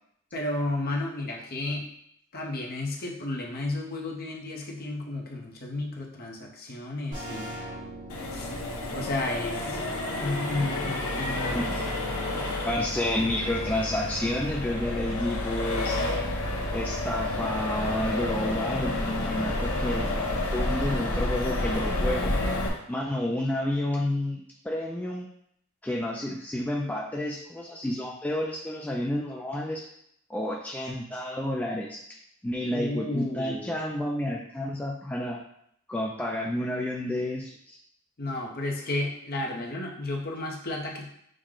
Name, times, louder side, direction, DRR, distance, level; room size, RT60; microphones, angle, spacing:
voice 1, 0.3-1.9 2.3-7.5 8.3-8.5 8.9-9.8 10.2-11.7 32.7-33.9 38.2-41.1, left 2 dB, 45° left, 0 dB, 0.8 m, -32 dB
sound 1, 7.1-12.5, right 1 dB, 55° right, 1.5 m, -38 dB
Accelerating revving vroom, 8.1-22.7, left 2 dB, 75° left, 0.9 m, -30 dB
voice 2, 12.6-16.0 16.7-22.4 22.9-25.3 25.8-29.8 30.3-32.0 32.4-35.4 35.9-37.8, left 1 dB, 5° left, -2 dB, 0.3 m, -30 dB
6.3 x 2.2 x 3.7 m, 0.72 s
head